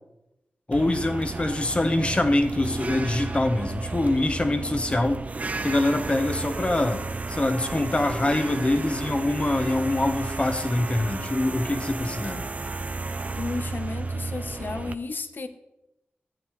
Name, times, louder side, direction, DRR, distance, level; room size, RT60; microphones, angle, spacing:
voice 1, 0.7-5.3 5.6-7.0 7.3-12.5, left 2 dB, 30° left, 6 dB, 1.1 m, -24 dB
sound 1, 0.7-14.9, right 3 dB, 40° right, 0.5 m, -33 dB
voice 2, 13.3-15.5, left 3 dB, 55° left, 10 dB, 0.9 m, -33 dB
14.0 x 8.7 x 3.2 m, 0.89 s
cardioid pair, 65°, 4 cm